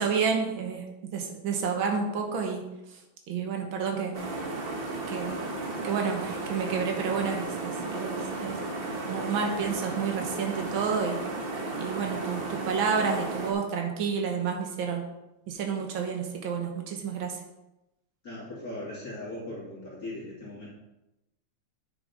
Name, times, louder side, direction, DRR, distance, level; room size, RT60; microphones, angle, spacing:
voice 1, 0.0-2.6 3.3-4.2 5.1-5.4 5.8-8.6 9.1-11.2 11.8-15.0 15.5-17.4, right 6 dB, 70° right, 2 dB, 1.9 m, -30 dB
sound 1, 4.1-13.5, right 2 dB, 45° right, 0.8 m, -34 dB
voice 2, 18.2-20.7, left 1 dB, 45° left, -6 dB, 2.8 m, -39 dB
8.8 x 6.7 x 3.9 m, 0.92 s
omnidirectional pair, 2.3 m